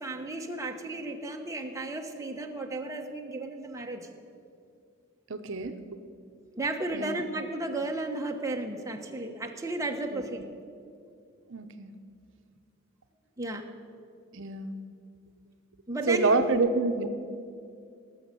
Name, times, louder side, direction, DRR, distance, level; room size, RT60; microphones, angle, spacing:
voice 1, 0.0-4.1 6.5-10.4 13.4-13.7 15.9-16.5, right 2 dB, 15° right, 2 dB, 1.0 m, -34 dB
voice 2, 5.3-5.8 6.9-7.2 10.1-10.2 11.5-11.9 14.3-14.8 16.1-17.1, right 3 dB, 65° right, 7 dB, 0.7 m, -27 dB
18.5 x 6.4 x 8.2 m, 2.4 s
head